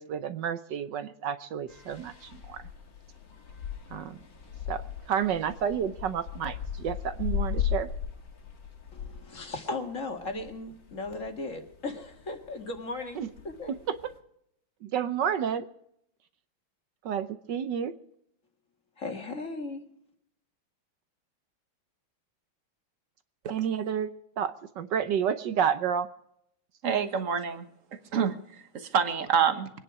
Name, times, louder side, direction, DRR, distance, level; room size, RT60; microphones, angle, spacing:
voice 1, 0.0-2.6 3.9-4.2 4.7-4.8 5.1-7.9 13.2-13.3 14.8-15.6 17.0-17.9 23.5-24.1 24.4-26.1, right 8 dB, 65° right, 11 dB, 1.3 m, -30 dB
sound 1, 1.7-14.2, left 9 dB, 60° left, 2.7 m, -38 dB
voice 2, 8.9-13.7 19.0-19.8, left 3 dB, 40° left, 3 dB, 2.2 m, -37 dB
voice 3, 26.8-29.7, right 7 dB, 45° right, 9 dB, 1.4 m, -28 dB
24.0 x 10.0 x 4.8 m, 0.75 s
omnidirectional pair, 2.3 m